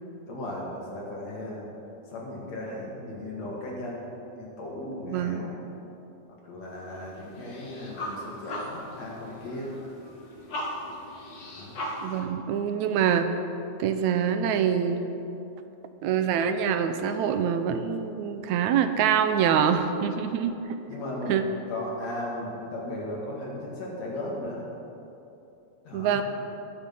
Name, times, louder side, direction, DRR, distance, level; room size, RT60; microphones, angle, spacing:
voice 1, 0.3-1.7 2.1-4.1 4.4-5.5 6.4-9.7 11.5-11.8 20.9-21.4 21.7-24.7 25.8-26.2, left 1 dB, 60° left, -3 dB, 3.5 m, -36 dB
voice 2, 5.1-5.5 12.0-13.4 13.8-15.1 16.0-20.6 21.3-21.4 25.9-26.2, right 8 dB, 80° right, 8 dB, 2.0 m, -25 dB
sound 1, 6.7-12.2, left 1 dB, 45° left, 1.8 m, -38 dB
20.0 x 6.9 x 5.5 m, 2.9 s
omnidirectional pair, 3.5 m